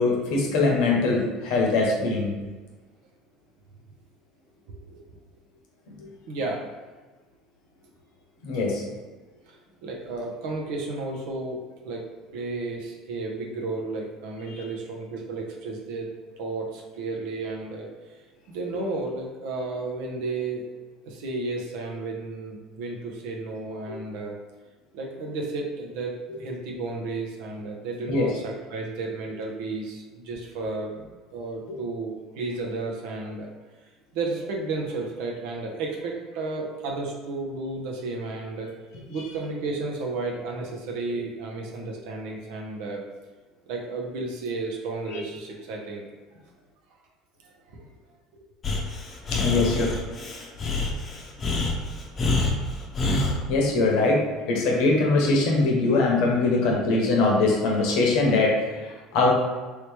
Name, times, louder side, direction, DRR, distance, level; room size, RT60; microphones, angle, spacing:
voice 1, 0.0-2.3 5.9-6.1 8.4-8.8 23.9-24.0 28.1-28.3 45.1-45.2 49.3-49.9 53.5-54.2 54.5-59.3, left 3 dB, 70° left, -1 dB, 0.9 m, -22 dB
voice 2, 4.7-5.0 6.3-6.7 9.5-9.6 9.8-11.6 11.8-12.0 12.3-16.1 16.4-18.2 18.5-20.6 21.0-24.4 24.9-30.9 31.3-33.5 34.1-38.7 39.1-43.0 43.7-46.0 47.7-47.8 48.3-48.4, right 3 dB, 75° right, 0 dB, 0.7 m, -33 dB
Breathing, 48.6-53.4, left 3 dB, 35° left, 0.7 m, -26 dB
3.2 x 2.9 x 3.3 m, 1.3 s
hypercardioid pair, 75°, 0 cm